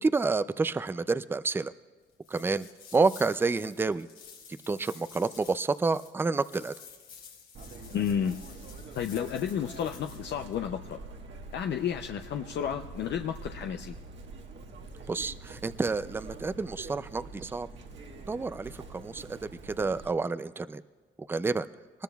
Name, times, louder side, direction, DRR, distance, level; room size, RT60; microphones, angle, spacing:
voice 1, 0.0-1.7 2.3-2.7 2.9-4.1 4.7-6.7 15.1-17.7 18.3-20.8 21.3-21.7, right 4 dB, 10° right, 14 dB, 0.4 m, -29 dB
sound 1, 2.2-10.3, left 6 dB, 85° left, 2.9 m, -51 dB
Chirp tweet, 7.5-20.1, right 3 dB, 65° right, 1.6 m, -45 dB
voice 2, 7.9-8.4 8.9-11.0 11.5-14.0, left 8 dB, 60° left, 5 dB, 0.6 m, -31 dB
23.5 x 20.0 x 2.3 m, 1.4 s
cardioid pair, 90°, 20 cm